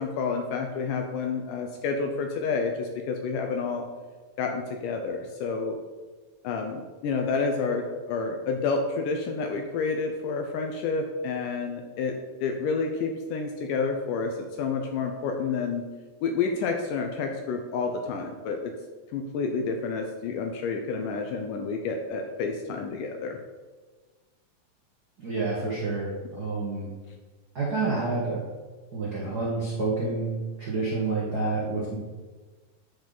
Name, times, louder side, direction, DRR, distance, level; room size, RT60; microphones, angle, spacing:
voice 1, 0.0-3.9 4.4-5.8 6.4-15.9 16.2-18.7 19.1-23.4, left 4 dB, 80° left, 4 dB, 2.0 m, -29 dB
voice 2, 25.2-26.9 27.5-28.4 28.9-32.0, right 3 dB, 70° right, -6 dB, 0.9 m, -28 dB
9.3 x 5.0 x 3.9 m, 1.3 s
omnidirectional pair, 4.1 m